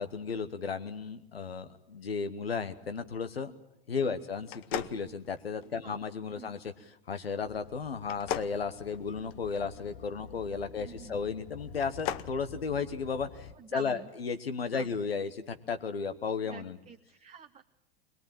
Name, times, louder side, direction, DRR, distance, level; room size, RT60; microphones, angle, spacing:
voice 1, 0.0-3.5 3.9-6.7 7.1-16.8, left 5 dB, 90° left, 9 dB, 1.1 m, -34 dB
sound 1, 4.5-5.8 8.0-9.6 11.7-12.3, left 10 dB, 45° left, 0.9 m, -37 dB
sound 2, 7.4-13.5, left 6 dB, 65° left, 1.2 m, -49 dB
voice 2, 10.8-11.2 13.6-14.1 14.7-14.9 16.4-17.6, right 7 dB, 20° right, 5 dB, 1.0 m, -48 dB
21.5 x 20.5 x 8.9 m, 0.86 s
hypercardioid pair, 90°, 29 cm